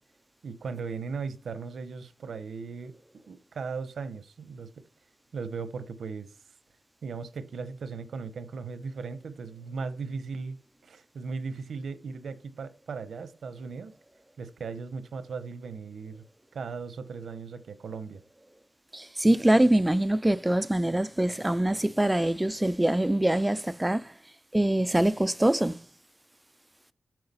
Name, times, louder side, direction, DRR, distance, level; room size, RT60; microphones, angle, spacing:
voice 1, 0.4-3.0 3.3-4.8 5.3-6.3 7.0-10.6 10.8-13.9 14.4-16.2 16.5-18.2, right 5 dB, 85° right, 0.9 m, -37 dB
voice 2, 18.9-24.1 24.5-25.8, right 1 dB, 10° right, 0.3 m, -24 dB
7.7 x 4.8 x 5.4 m
wide cardioid pair, 135°, 0 cm